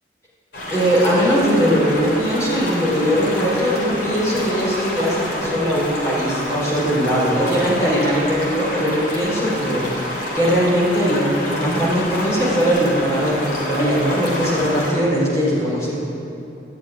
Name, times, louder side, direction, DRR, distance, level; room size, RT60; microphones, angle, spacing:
sound 1, 0.5-14.9, left 1 dB, 65° left, 3.6 m, -28 dB
voice 1, 0.7-15.9, equal, 15° left, -7 dB, 4.4 m, -20 dB
13.0 x 8.2 x 9.7 m, 2.8 s
head